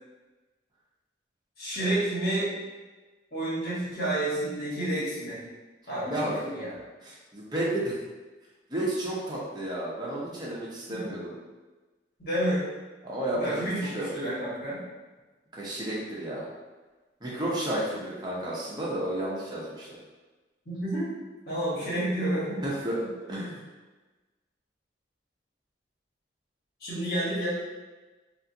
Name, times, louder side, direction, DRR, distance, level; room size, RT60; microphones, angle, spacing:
voice 1, 1.6-2.5 3.3-5.4 5.9-6.7 10.9-11.0 12.2-12.7 13.3-14.8 20.6-21.1 21.5-22.6 26.8-27.5, right 1 dB, 55° left, -9 dB, 1.4 m, -30 dB
voice 2, 6.1-6.4 7.0-7.9 8.7-11.3 13.0-14.1 15.5-16.5 17.2-19.9 21.8-21.9 22.6-22.9 23.3-23.6, right 1 dB, 20° right, -6 dB, 0.7 m, -32 dB
3.4 x 2.5 x 2.8 m, 1.2 s
head